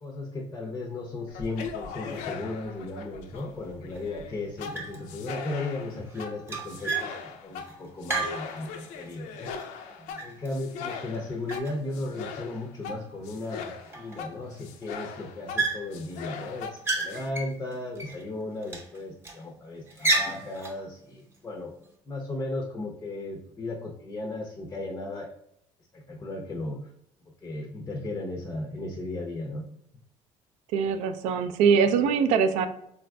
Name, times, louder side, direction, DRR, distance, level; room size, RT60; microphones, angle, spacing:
voice 1, 0.0-9.5 10.2-21.7 22.1-25.3 25.9-26.8 27.2-29.6, left 2 dB, 20° left, 1 dB, 0.4 m, -36 dB
sound 1, 1.3-17.3, left 6 dB, 80° left, 0.4 m, -40 dB
sound 2, 3.3-3.4 3.9-4.3 4.7-5.2 5.4-9.1 9.5-11.2 11.4-12.4 13.0-13.1 13.3-13.4 13.8-14.6 14.8-15.1 15.6-16.2 16.6-18.2 18.6-19.4 19.9-20.8, right 3 dB, 20° right, 0.7 m, -33 dB
voice 2, 30.7-32.7, right 6 dB, 80° right, 9 dB, 0.4 m, -22 dB
3.9 x 2.5 x 2.2 m, 0.76 s
cardioid pair, 110°, 12 cm